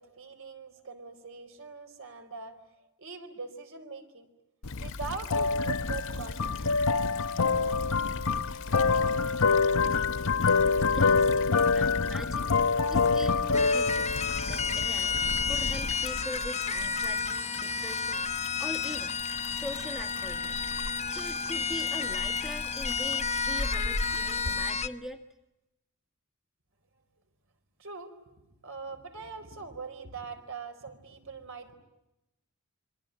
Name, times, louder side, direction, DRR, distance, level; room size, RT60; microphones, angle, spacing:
voice 1, 0.0-2.6 3.0-4.3 4.8-7.0 27.8-28.1 28.6-31.7, right 4 dB, 60° right, 7 dB, 4.4 m, -42 dB
sound 1, 4.6-16.2, left 4 dB, 85° left, 1.0 m, -26 dB
Stream / Trickle dribble, 4.7-24.5, left 7 dB, 60° left, 1.8 m, -45 dB
voice 2, 10.9-11.3 11.7-12.5 12.9-14.1 14.5-15.2 15.5-18.3 18.6-19.2 19.5-20.7 21.1-25.2, left 1 dB, ahead, 6 dB, 1.5 m, -42 dB
sound 2, 13.5-24.9, left 5 dB, 30° left, 1.1 m, -31 dB
26.5 x 25.0 x 8.8 m, 0.94 s
head